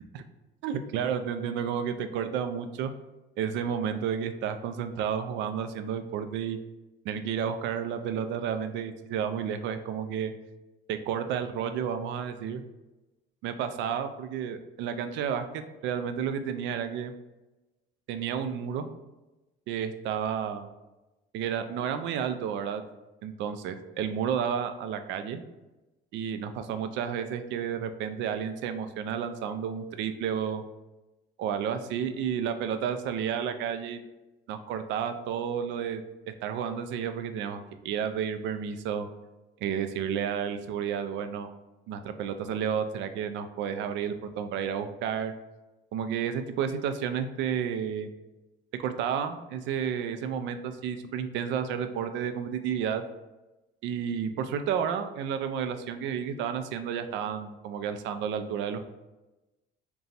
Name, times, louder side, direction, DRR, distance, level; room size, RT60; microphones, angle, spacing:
voice 1, 0.6-2.9 3.4-6.6 7.0-10.3 10.9-12.6 13.4-17.1 18.1-18.9 19.7-20.7 21.3-22.8 23.2-25.4 26.1-30.6 31.4-34.0 34.5-36.0 36.4-39.1 39.6-41.5 41.9-45.3 45.9-48.1 48.8-53.0 53.8-58.8, right 8 dB, 70° right, 9 dB, 0.4 m, -31 dB
3.9 x 2.3 x 4.0 m, 1.0 s
cardioid pair, 140°, 19 cm